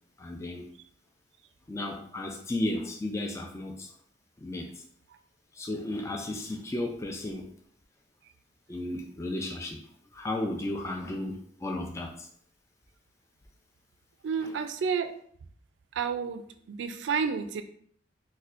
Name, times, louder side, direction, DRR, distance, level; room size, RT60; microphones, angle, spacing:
voice 1, 0.2-0.7 1.7-3.9 4.4-4.8 5.5-7.5 8.7-9.8 10.1-12.3 14.4-14.5, left 1 dB, 15° left, 2 dB, 0.3 m, -34 dB
voice 2, 14.2-15.1 15.9-17.6, right 6 dB, 75° right, 9 dB, 0.3 m, -30 dB
4.1 x 2.1 x 2.4 m, 0.63 s
head